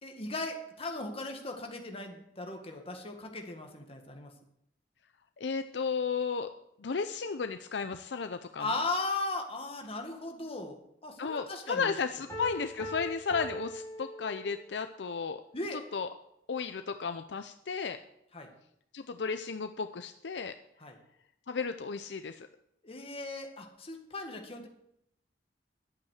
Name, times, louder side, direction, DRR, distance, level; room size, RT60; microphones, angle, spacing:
voice 1, 0.0-4.3 8.6-11.9 15.5-15.8 18.3-18.5 20.8-21.0 22.8-24.7, left 2 dB, 35° left, 3 dB, 1.9 m, -37 dB
voice 2, 5.4-6.5 6.8-8.7 11.2-15.4 15.7-16.1 16.5-18.0 18.9-20.5 21.5-22.5, left 5 dB, 70° left, 9 dB, 0.6 m, -34 dB
Piano, 12.3-14.9, equal, 20° left, 4.0 m, -41 dB
11.0 x 8.4 x 6.5 m, 0.78 s
head